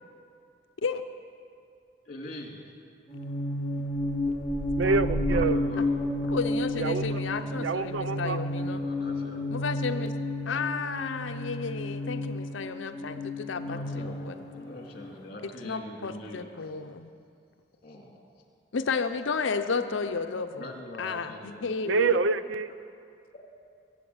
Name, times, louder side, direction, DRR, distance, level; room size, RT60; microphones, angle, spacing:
voice 1, 2.1-2.7 5.4-5.9 8.6-9.6 13.6-16.8 17.8-18.2 20.6-21.7, left 1 dB, 45° left, 0 dB, 2.4 m, -43 dB
sound 1, 3.1-15.1, left 1 dB, 20° left, 3.7 m, -31 dB
sound 2, 3.9-11.7 12.2-12.6, right 1 dB, 35° right, 0.5 m, -39 dB
voice 2, 4.8-5.6 6.8-7.2 7.6-8.4 21.8-22.7, right 4 dB, 90° right, 13 dB, 0.6 m, -27 dB
voice 3, 6.3-8.8 9.5-10.1 10.5-14.3 15.6-17.1 18.7-20.7 21.0-21.3 21.6-22.2, left 5 dB, 90° left, 8 dB, 0.6 m, -32 dB
22.0 x 8.2 x 7.9 m, 2.4 s
head